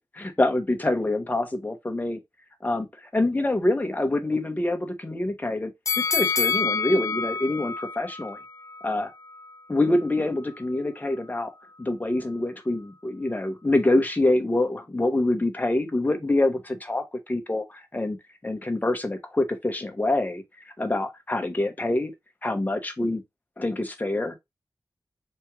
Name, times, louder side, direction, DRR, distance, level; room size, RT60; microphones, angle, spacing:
voice 1, 0.1-2.2 2.6-5.7 6.0-8.4 8.8-9.1 9.7-11.5 11.8-18.2 18.4-20.4 20.8-22.1 22.4-23.2 23.6-24.3, left 2 dB, 25° left, 1.1 m, -25 dB
sound 1, 5.9-9.0 9.4-9.5, left 5 dB, 50° left, 0.5 m, -27 dB
4.4 x 3.6 x 3.2 m
wide cardioid pair, 90°, 7 cm